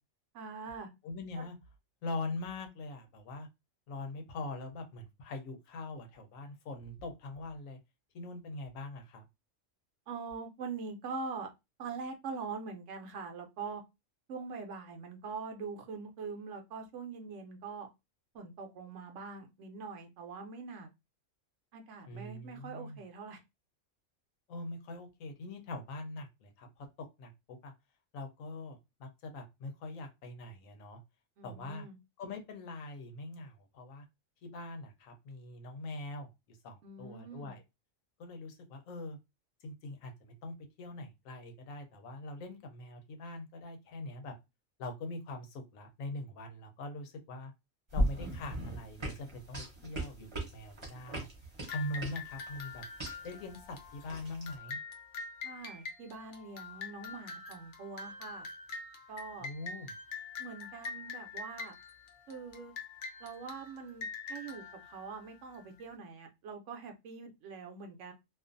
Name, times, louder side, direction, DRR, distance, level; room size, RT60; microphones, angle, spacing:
voice 1, 0.3-0.9 1.4-1.5 10.1-11.5 11.8-13.8 14.3-17.9 18.3-20.9 21.7-23.4 31.4-32.0 36.8-37.5 55.4-58.5 59.1-59.5 60.4-61.7 62.3-62.7 63.2-68.1, right 4 dB, 70° right, 0.9 m, -43 dB
voice 2, 1.0-1.6 2.0-3.5 3.9-7.8 8.1-9.3 22.1-23.0 24.5-26.7 27.2-27.7 28.1-31.0 31.4-31.9 32.2-34.0 34.4-37.6 38.2-39.2 39.6-44.3 44.8-47.5 47.9-51.3 51.7-52.8 53.2-54.8 59.4-59.9, left 2 dB, 85° left, 1.1 m, -43 dB
sound 1, 47.9-54.5, right 1 dB, 25° right, 0.7 m, -37 dB
sound 2, 51.7-65.8, left 4 dB, 55° left, 0.6 m, -45 dB
2.5 x 2.4 x 2.5 m
omnidirectional pair, 1.4 m